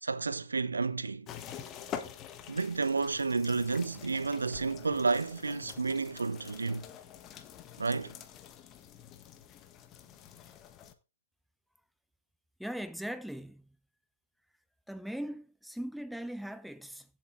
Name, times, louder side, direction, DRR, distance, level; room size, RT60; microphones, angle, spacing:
voice 1, 0.0-1.3 2.5-6.8 7.8-8.1, right 4 dB, 75° right, 1.1 m, -31 dB
sound 1, 1.3-10.9, left 9 dB, 25° left, 1.4 m, -47 dB
voice 2, 12.6-13.6 14.9-17.1, equal, ahead, 0.8 m, -39 dB
15.5 x 7.9 x 3.7 m
figure-of-eight pair, 120°, 0 cm